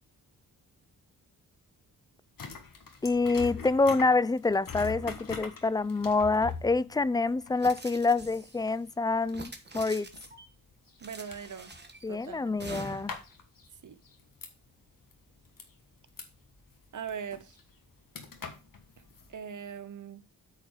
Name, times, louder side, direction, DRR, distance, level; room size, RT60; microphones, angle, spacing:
sound 1, 2.4-14.8 15.1-19.3, left 5 dB, 60° left, 1.5 m, -44 dB
voice 1, 3.0-10.1 12.0-13.1, left 3 dB, 10° left, 0.3 m, -27 dB
sound 2, 7.6-8.7 9.3-10.5 11.0-12.0 12.6-13.2, right 3 dB, 25° right, 1.3 m, -45 dB
voice 2, 11.0-11.7 12.1-12.6 13.8-14.0 16.9-17.6 19.3-20.2, right 7 dB, 50° right, 0.8 m, -40 dB
8.7 x 4.4 x 4.8 m
cardioid pair, 60°, 38 cm